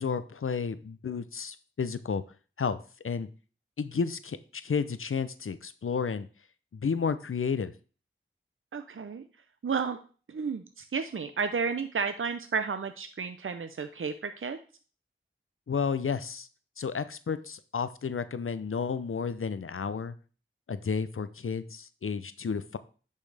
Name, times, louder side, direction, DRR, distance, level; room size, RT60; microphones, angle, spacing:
voice 1, 0.0-2.2 2.6-3.3 3.8-6.3 6.7-7.7 15.7-16.5 16.8-20.1 20.7-22.8, left 5 dB, 80° left, 13 dB, 0.6 m, -32 dB
voice 2, 8.7-9.2 9.6-10.0 10.3-14.6, right 5 dB, 75° right, 9 dB, 0.6 m, -32 dB
10.0 x 5.5 x 3.3 m, 0.38 s
wide cardioid pair, 40°, 21 cm